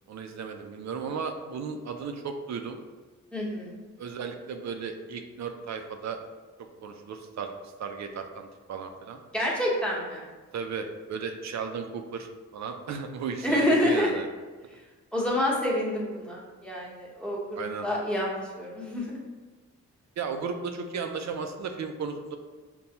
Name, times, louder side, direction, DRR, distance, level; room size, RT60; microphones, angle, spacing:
voice 1, 0.1-2.8 4.0-6.2 6.8-7.5 7.8-9.2 10.5-14.3 17.6-17.9 20.2-22.4, right 5 dB, 60° right, 5 dB, 0.4 m, -35 dB
voice 2, 3.3-3.8 9.3-10.2 13.4-14.1 15.1-19.2, left 1 dB, 5° left, -5 dB, 1.0 m, -28 dB
5.4 x 2.2 x 2.8 m, 1.3 s
cardioid pair, 100°, 31 cm